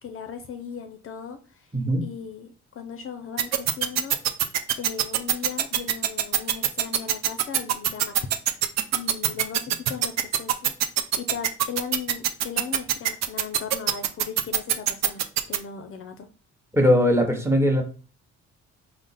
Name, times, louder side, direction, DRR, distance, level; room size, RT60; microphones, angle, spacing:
voice 1, 0.0-1.7 2.0-4.2 4.8-8.3 8.9-10.7 11.2-15.2 15.5-16.3, left 7 dB, 45° left, 7 dB, 0.5 m, -37 dB
voice 2, 1.7-2.0 16.7-17.8, equal, 10° right, 2 dB, 0.9 m, -20 dB
sound 1, 3.4-15.6, right 11 dB, 60° right, 0.5 m, -22 dB
3.7 x 2.0 x 4.0 m, 0.36 s
cardioid pair, 90°, 30 cm